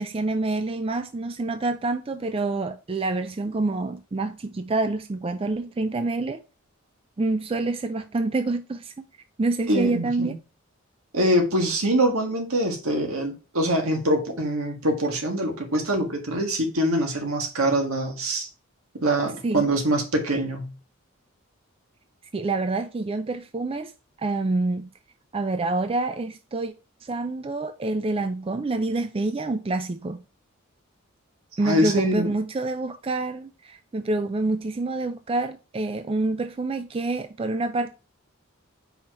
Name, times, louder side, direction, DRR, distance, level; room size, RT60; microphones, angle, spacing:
voice 1, 0.0-6.4 7.2-9.0 9.4-10.4 19.4-19.7 22.3-23.9 24.2-24.9 25.3-26.7 27.0-30.2 31.6-37.9, right 2 dB, 25° right, 0.4 m, -27 dB
voice 2, 9.7-10.3 11.1-18.5 19.0-20.7 31.6-32.3, right 1 dB, 90° right, 1.7 m, -24 dB
5.6 x 4.4 x 4.5 m
head